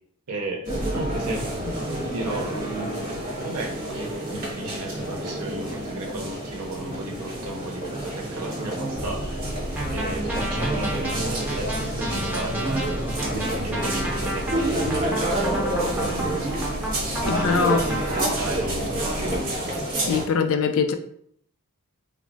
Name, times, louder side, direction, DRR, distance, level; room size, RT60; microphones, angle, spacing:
voice 1, 0.3-0.7 0.9-1.5 2.0-9.4 9.9-13.0 13.3-16.6 17.2-19.5, right 2 dB, 80° right, 0 dB, 0.6 m, -34 dB
sound 1, 0.6-20.2, right 1 dB, 40° right, 0.8 m, -29 dB
Purr, 8.9-19.4, equal, 85° left, 0.7 m, -35 dB
sound 2, 9.8-18.3, right 1 dB, 5° right, 0.5 m, -32 dB
voice 2, 17.3-17.8 19.9-20.9, left 5 dB, 65° left, 7 dB, 0.3 m, -22 dB
3.3 x 2.0 x 2.6 m, 0.66 s
head